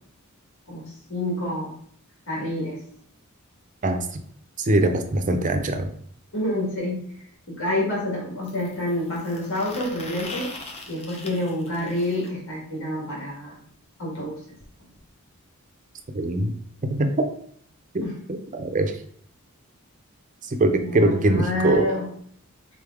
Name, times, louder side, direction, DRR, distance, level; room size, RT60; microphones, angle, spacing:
voice 1, 1.1-1.7 2.3-2.8 6.3-7.1 7.5-10.6 10.9-13.6 14.0-14.4 18.0-18.1 20.8-22.1, left 1 dB, 60° left, -4 dB, 1.7 m, -28 dB
voice 2, 4.6-5.9 16.1-16.5 16.8-17.1 17.9-19.0 20.5-21.9, right 1 dB, 35° right, 6 dB, 0.5 m, -22 dB
sound 1, 6.4-6.5 8.4-12.3 14.2-14.3 14.6-14.7 15.0-15.1 16.0-16.1, left 2 dB, 30° left, 0.7 m, -41 dB
4.4 x 3.4 x 3.4 m, 0.63 s
head